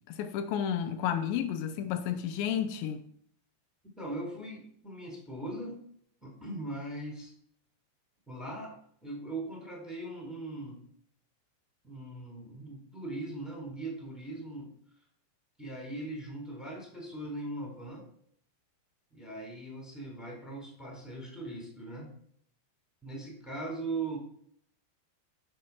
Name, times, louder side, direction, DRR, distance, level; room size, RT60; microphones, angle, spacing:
voice 1, 0.1-3.0, left 9 dB, 85° left, 3.1 m, -31 dB
voice 2, 4.0-5.8 6.2-7.3 8.3-8.7 9.0-10.8 11.8-14.7 15.6-18.1 19.1-22.1 23.0-24.2, right 2 dB, ahead, 3.1 m, -40 dB
13.0 x 6.7 x 6.1 m
omnidirectional pair, 5.1 m